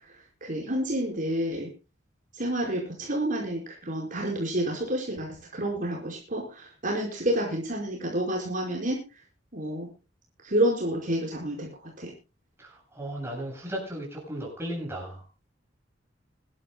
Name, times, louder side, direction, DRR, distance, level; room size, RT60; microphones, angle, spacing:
voice 1, 0.0-1.7 2.3-9.0 9.5-9.9 10.4-12.1, right 1 dB, 45° right, -1 dB, 4.9 m, -29 dB
voice 2, 12.6-15.2, right 1 dB, 15° right, -1 dB, 7.7 m, -35 dB
25.0 x 12.5 x 2.3 m, 0.30 s
head